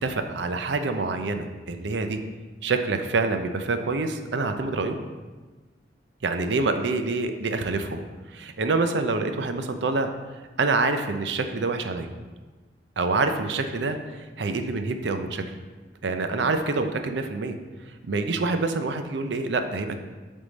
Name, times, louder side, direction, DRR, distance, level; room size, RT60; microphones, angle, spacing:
voice 1, 0.0-2.2 2.6-5.0 6.2-8.0 8.3-10.1 10.6-12.1 13.0-14.0 14.4-15.4 16.0-17.5 18.0-20.0, right 3 dB, 70° right, 7 dB, 0.5 m, -26 dB
8.0 x 3.7 x 4.0 m, 1.3 s
head